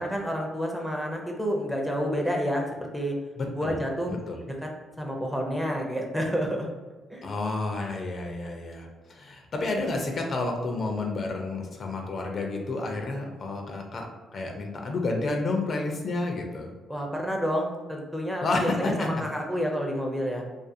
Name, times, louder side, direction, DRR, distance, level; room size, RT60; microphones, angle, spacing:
voice 1, 0.0-3.1 3.6-4.1 4.5-4.6 5.0-6.7 7.1-7.3 16.9-20.4, equal, ahead, 0 dB, 0.5 m, -29 dB
voice 2, 3.4-3.8 4.1-4.4 7.2-14.1 14.3-16.7 18.4-19.2, left 2 dB, 45° left, 2 dB, 0.4 m, -30 dB
2.5 x 2.4 x 2.6 m, 1.3 s
cardioid pair, 90°, 0 cm